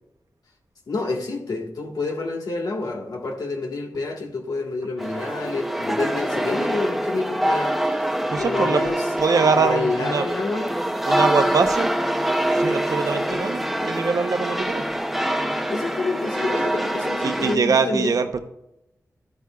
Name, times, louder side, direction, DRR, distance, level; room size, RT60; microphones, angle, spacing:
voice 1, 0.9-8.0 8.3-9.0 9.6-10.7 13.1-13.4 15.7-18.2, left 3 dB, 85° left, 1 dB, 1.4 m, -28 dB
sound 1, 5.0-17.6, right 1 dB, 5° right, 0.6 m, -25 dB
voice 2, 8.3-8.9 9.2-10.3 11.1-11.9 12.5-14.8 17.2-18.4, right 5 dB, 70° right, 8 dB, 0.7 m, -23 dB
13.0 x 9.6 x 2.3 m, 0.85 s
wide cardioid pair, 95°, 6 cm